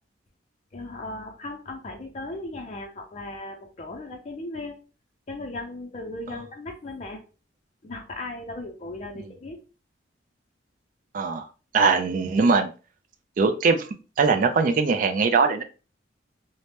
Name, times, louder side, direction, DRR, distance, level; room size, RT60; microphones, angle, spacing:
voice 1, 0.7-4.8 5.3-7.2 7.8-9.6, left 2 dB, 35° left, 3 dB, 0.4 m, -37 dB
voice 2, 11.1-11.5 11.7-12.7 13.4-13.9 14.2-15.6, right 4 dB, 45° right, 7 dB, 0.3 m, -21 dB
2.7 x 2.1 x 3.3 m, 0.35 s
head